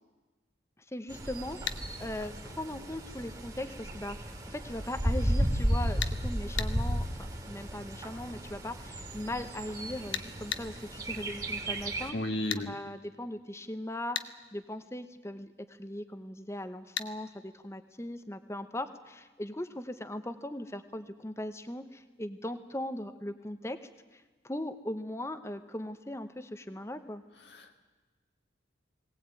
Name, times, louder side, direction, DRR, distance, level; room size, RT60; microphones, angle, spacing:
voice 1, 0.9-1.6 2.0-27.2, left 1 dB, 15° left, 9 dB, 1.0 m, -39 dB
Bird, 1.1-12.1, equal, 20° right, 2.6 m, -34 dB
sound 1, 1.7-1.8 6.0-6.2 6.6-6.7 10.1-10.7 12.5-12.7 14.1-14.3 17.0-17.1, left 9 dB, 80° left, 1.1 m, -34 dB
voice 2, 12.1-12.8 27.5-27.7, left 1 dB, 65° left, 3 dB, 1.8 m, -34 dB
21.5 x 18.0 x 9.1 m, 1.3 s
head